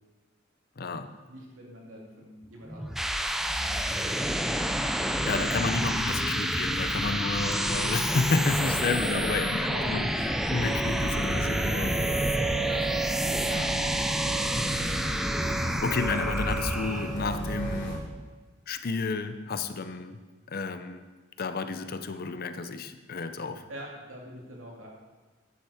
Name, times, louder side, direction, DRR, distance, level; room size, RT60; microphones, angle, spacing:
voice 1, 0.8-1.1 5.3-12.0 13.5-13.8 15.8-18.1 18.7-20.2 20.5-21.1 21.4-23.7, left 4 dB, 50° left, 10 dB, 0.6 m, -31 dB
voice 2, 1.3-3.0 3.6-4.4 5.1-6.2 8.6-8.7 9.0-9.9 11.1-12.9 13.9-14.7 15.5-15.7 19.3-19.5 23.7-24.9, right 1 dB, 80° right, -2 dB, 2.5 m, -44 dB
sound 1, 2.7-17.2, equal, ahead, 0.4 m, -29 dB
sound 2, 10.5-18.0, right 3 dB, 30° left, 2.8 m, -33 dB
9.5 x 7.1 x 4.9 m, 1.3 s
head